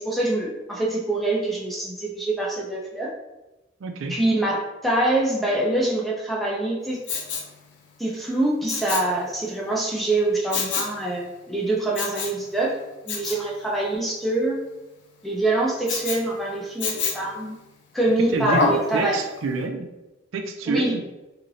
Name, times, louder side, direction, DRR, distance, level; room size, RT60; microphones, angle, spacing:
voice 1, 0.0-3.1 4.1-7.0 8.0-12.8 13.0-14.6 15.2-17.6 17.9-19.2 20.7-20.9, right 2 dB, ahead, -4 dB, 0.5 m, -25 dB
voice 2, 3.8-4.2 18.3-18.6 18.9-19.9 20.3-21.0, right 3 dB, 85° right, 5 dB, 0.4 m, -27 dB
Respiratory sounds, 7.0-7.5 8.7-9.1 10.5-11.0 11.9-12.4 13.1-13.4 15.9-16.2 16.8-17.3 18.5-18.9 19.4-19.5, left 4 dB, 60° left, 0.5 m, -26 dB
3.1 x 2.8 x 2.6 m, 1.0 s
head